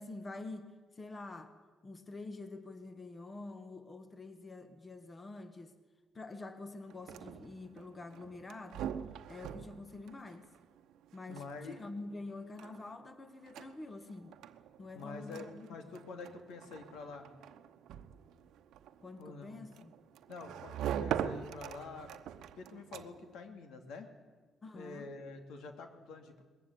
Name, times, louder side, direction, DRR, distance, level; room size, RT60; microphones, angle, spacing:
voice 1, 0.0-1.5 1.8-5.7 6.1-8.9 9.3-10.5 11.1-14.3 14.8-15.7 19.0-19.9 24.6-25.1, left 2 dB, 30° left, 9 dB, 1.7 m, -47 dB
sound 1, 6.9-23.4, right 9 dB, 85° right, 0.9 m, -44 dB
voice 2, 11.3-11.8 14.9-17.3 19.2-19.6 20.3-22.1 22.5-24.1 24.7-26.4, left 4 dB, 85° left, 5 dB, 2.6 m, -47 dB
20.5 x 15.0 x 9.6 m, 1.4 s
cardioid pair, 90°, 0 cm